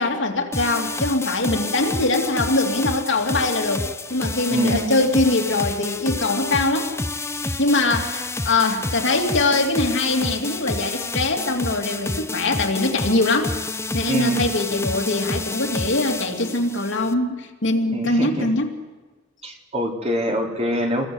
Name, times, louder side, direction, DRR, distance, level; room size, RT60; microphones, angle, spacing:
voice 1, 0.0-3.8 4.1-6.9 7.6-13.5 13.9-18.8, left 2 dB, 65° left, 2 dB, 3.0 m, -22 dB
sound 1, 0.5-17.1, left 2 dB, 15° left, 0.7 m, -29 dB
voice 2, 4.5-4.9 14.1-14.5 17.9-18.5 19.4-21.1, equal, 30° right, 1 dB, 3.8 m, -24 dB
28.0 x 21.0 x 8.1 m, 1.3 s
head